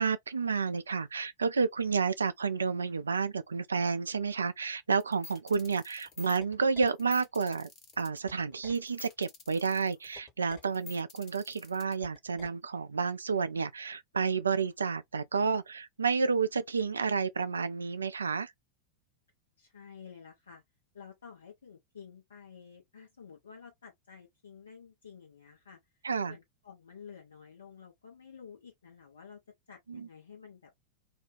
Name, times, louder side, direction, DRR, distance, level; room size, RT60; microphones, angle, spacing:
voice 1, 0.0-7.7 8.0-18.5 26.0-26.4 29.9-30.1, right 5 dB, 75° right, 0.3 m, -30 dB
sound 1, 5.0-12.5, left 4 dB, 35° left, 1.3 m, -50 dB
voice 2, 19.6-20.6 20.9-25.8 26.2-29.4 29.7-30.7, left 6 dB, 70° left, 0.8 m, -51 dB
2.4 x 2.3 x 3.1 m
figure-of-eight pair, 90°, 0 cm